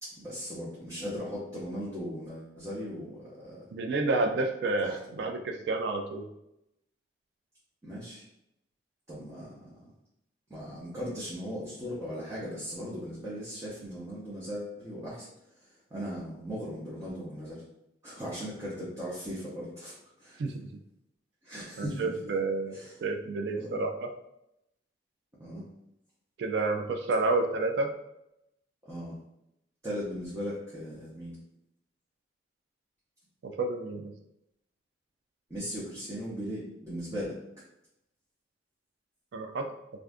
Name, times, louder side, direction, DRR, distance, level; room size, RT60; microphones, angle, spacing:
voice 1, 0.0-3.6 4.8-5.0 7.8-8.2 9.1-9.7 10.5-15.3 15.9-17.6 18.0-20.4 21.4-22.1 22.7-23.0 23.6-23.8 25.4-25.6 28.9-29.2 29.8-31.4 35.5-37.4, equal, 20° right, -8 dB, 0.7 m, -38 dB
voice 2, 3.7-6.3 20.4-20.7 21.8-24.1 26.4-27.9 33.4-34.1 39.3-39.7, right 3 dB, 65° right, 4 dB, 0.3 m, -30 dB
2.5 x 2.4 x 3.4 m, 0.84 s
head